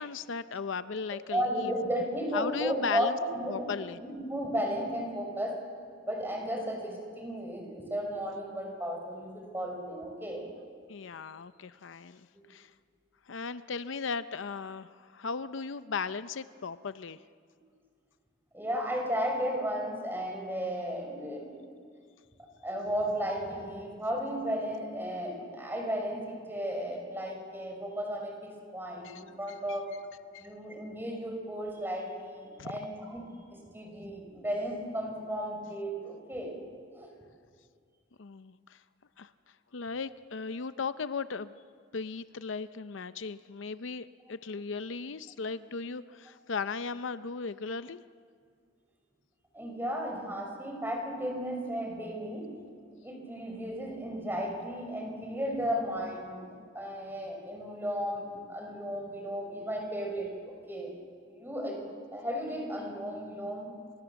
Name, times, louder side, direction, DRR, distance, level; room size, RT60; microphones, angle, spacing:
voice 1, 0.0-1.7 2.3-3.2 3.5-4.0 10.9-12.7 13.3-17.2 29.0-29.2 30.3-30.5 32.6-32.7 38.2-38.8 39.2-39.3 39.7-41.5 41.9-48.0, left 5 dB, 70° left, 13 dB, 0.6 m, -37 dB
voice 2, 1.1-5.6 6.1-10.5 18.5-21.6 22.6-29.9 30.4-36.6 36.9-37.1 49.5-52.5 53.0-56.4 56.7-61.0 61.3-61.8 62.1-63.7, equal, 10° right, 1 dB, 5.5 m, -34 dB
30.0 x 25.5 x 7.1 m, 2.1 s
head